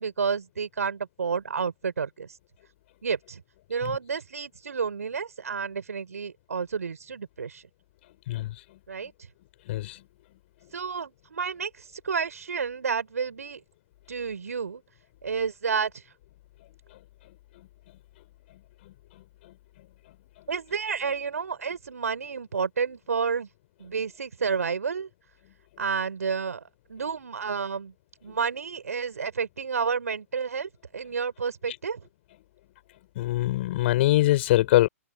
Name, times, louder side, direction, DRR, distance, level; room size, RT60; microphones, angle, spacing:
voice 1, 0.0-2.3 3.0-3.4 3.7-7.6 8.9-9.1 10.7-13.6 14.1-14.8 15.2-15.9 20.5-23.5 23.8-25.1 25.8-26.6 26.9-27.9 28.2-32.1, right 6 dB, 75° right, 5.3 m, -30 dB
voice 2, 9.7-10.0 33.1-34.9, left 16 dB, 50° left, 4.8 m, -22 dB
figure-of-eight pair, 120°, 8 cm